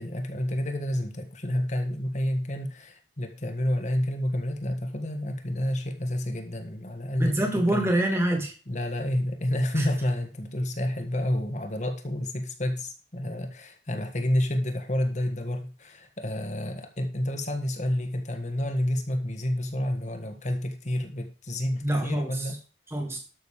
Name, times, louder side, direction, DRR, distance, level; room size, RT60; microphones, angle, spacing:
voice 1, 0.0-7.9 8.7-22.6, left 1 dB, 40° left, 6 dB, 1.6 m, -29 dB
voice 2, 7.2-8.5 9.8-9.9 21.8-22.5 22.9-23.2, right 1 dB, 15° right, 3 dB, 2.5 m, -26 dB
12.5 x 6.5 x 4.9 m, 0.36 s
head